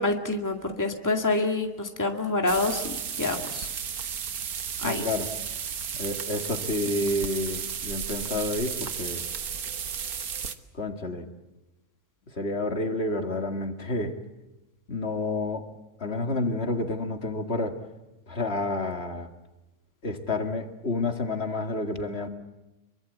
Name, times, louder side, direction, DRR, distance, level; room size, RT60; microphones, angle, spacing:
voice 1, 0.0-3.7 4.8-5.0, left 2 dB, 10° left, 3 dB, 2.1 m, -27 dB
sound 1, 2.5-10.6, right 7 dB, 85° right, 1.7 m, -34 dB
voice 2, 4.8-5.3 5.9-9.2 10.7-11.3 12.3-14.2 14.9-15.7 16.0-17.8 18.3-19.3 20.0-22.3, left 2 dB, 45° left, 5 dB, 2.3 m, -29 dB
25.5 x 23.5 x 8.4 m, 1.0 s
omnidirectional pair, 1.5 m